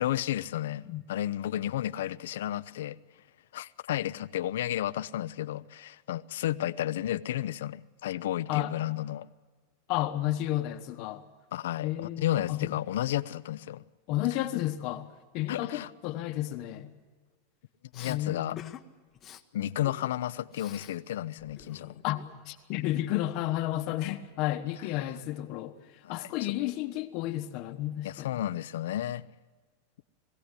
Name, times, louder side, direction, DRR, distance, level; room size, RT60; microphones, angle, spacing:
voice 1, 0.0-3.0 3.5-9.3 11.5-13.8 15.5-15.9 17.9-18.6 19.5-21.9 26.0-26.5 28.0-29.3, left 12 dB, 80° left, 0.6 m, -32 dB
voice 2, 9.9-11.2 11.8-12.7 14.1-15.1 15.3-16.9 18.1-18.7 22.0-22.2 22.5-25.7 26.1-28.4, left 14 dB, 45° left, 1.1 m, -32 dB
Respiratory sounds, 17.9-18.2 18.6-18.8 19.1-19.4 19.8-21.0 21.2-22.7, left 10 dB, 25° left, 0.9 m, -48 dB
21.5 x 16.5 x 9.7 m
supercardioid pair, 160°, 0 cm